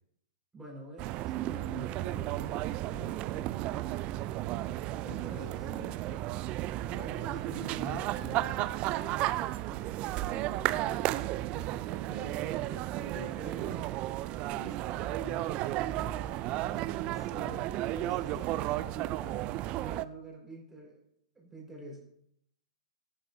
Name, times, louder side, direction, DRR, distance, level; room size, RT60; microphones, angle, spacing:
voice 1, 0.5-4.2 5.1-5.7 6.9-8.1 17.0-21.0 21.3-22.0, right 1 dB, 10° right, -3 dB, 4.7 m, -47 dB
sound 1, 1.0-20.0, right 15 dB, 35° right, 0.4 m, -33 dB
voice 2, 4.9-6.2 7.5-8.7 8.9-9.6 11.9-13.8 14.2-17.1 17.4-17.6, equal, 15° left, -4 dB, 4.1 m, -48 dB
17.0 x 9.7 x 2.7 m, 0.72 s
figure-of-eight pair, 115°, 3 cm